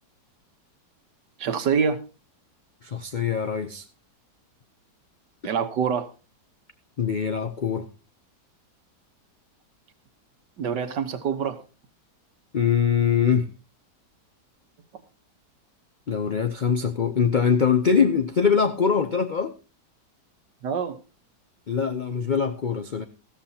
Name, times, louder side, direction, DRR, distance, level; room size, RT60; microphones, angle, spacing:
voice 1, 1.4-2.0 5.4-6.1 10.6-11.6 20.6-21.0, right 6 dB, 80° right, 1.8 m, -25 dB
voice 2, 2.8-3.8 7.0-7.9 12.5-13.5 16.1-19.5 21.7-23.0, left 6 dB, 75° left, 0.4 m, -23 dB
14.5 x 13.0 x 2.8 m
omnidirectional pair, 1.8 m